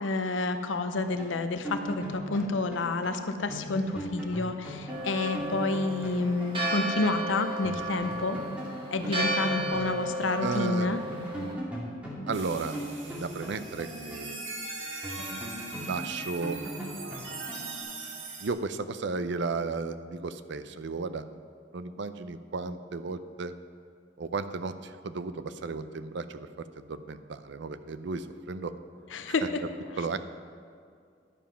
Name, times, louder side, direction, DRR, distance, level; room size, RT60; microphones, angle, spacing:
voice 1, 0.0-8.4 8.9-11.0 29.1-29.4, left 3 dB, 80° left, 8 dB, 0.6 m, -29 dB
sound 1, 1.2-6.9 7.2-7.3 7.6-10.6 10.9-14.6 15.0-17.8, equal, 5° right, 2.2 m, -39 dB
Church bell, 4.9-11.5, right 1 dB, 30° right, 2.0 m, -34 dB
voice 2, 10.4-10.9 12.3-14.4 15.8-16.6 18.4-21.3 21.7-23.5 24.2-26.5 26.8-28.7 29.4-29.5 30.0-30.2, right 4 dB, 65° right, 11 dB, 0.5 m, -34 dB
sound 2, 12.3-18.5, right 3 dB, 85° right, 1.6 m, -40 dB
11.0 x 7.3 x 5.6 m, 2.3 s
head